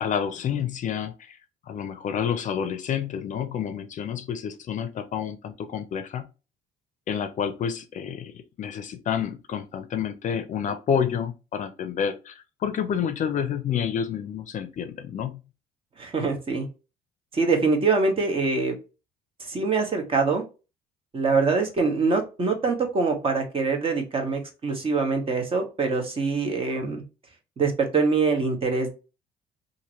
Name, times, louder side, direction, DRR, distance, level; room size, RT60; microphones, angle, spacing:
voice 1, 0.0-1.4 1.7-6.2 7.1-8.3 8.6-15.3, left 8 dB, 50° left, 0.5 m, -29 dB
voice 2, 16.0-16.7 17.3-18.7 19.4-20.4 21.1-27.0 27.6-28.9, right 4 dB, 35° right, 1.0 m, -24 dB
2.8 x 2.6 x 2.9 m
cardioid pair, 110°, 17 cm